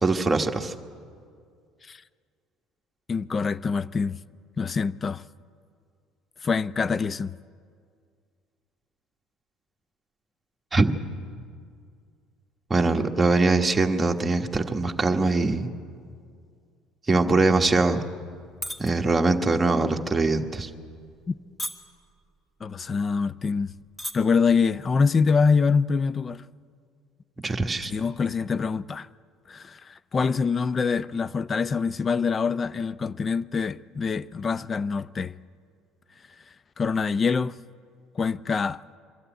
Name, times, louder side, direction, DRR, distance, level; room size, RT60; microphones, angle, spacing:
voice 1, 0.0-0.7 10.7-10.9 12.7-15.7 17.1-18.0 18.8-20.7 27.4-27.9, right 3 dB, 15° right, 1.3 m, -22 dB
voice 2, 3.1-4.2 4.6-5.2 6.4-7.4 21.3-21.4 22.6-23.8 24.1-26.4 27.9-29.1 29.5-35.3 36.8-37.6 38.2-38.8, left 5 dB, 30° left, 0.4 m, -25 dB
sound 1, 18.4-18.9 19.3-19.6 20.2-20.4 21.1-21.3 21.6-22.1 22.8-22.9 23.2-23.3 23.8-24.1 24.5-24.7, equal, 10° left, 1.9 m, -33 dB
23.0 x 13.0 x 9.0 m
supercardioid pair, 100°, 0 cm